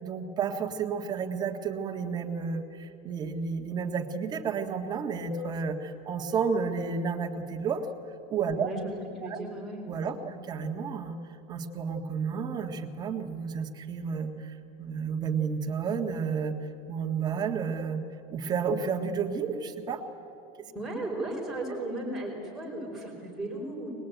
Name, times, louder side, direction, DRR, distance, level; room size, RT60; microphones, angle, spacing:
voice 1, 0.0-7.8 8.3-8.7 9.2-9.4 9.8-11.2 11.5-16.5 16.9-18.0 18.3-20.0, right 6 dB, 20° right, 3 dB, 1.7 m, -31 dB
voice 2, 8.5-8.9 9.2-9.8 10.2-10.4 20.6-23.9, right 2 dB, ahead, -3 dB, 5.1 m, -35 dB
23.0 x 21.5 x 9.2 m, 2.9 s
supercardioid pair, 170°, 19 cm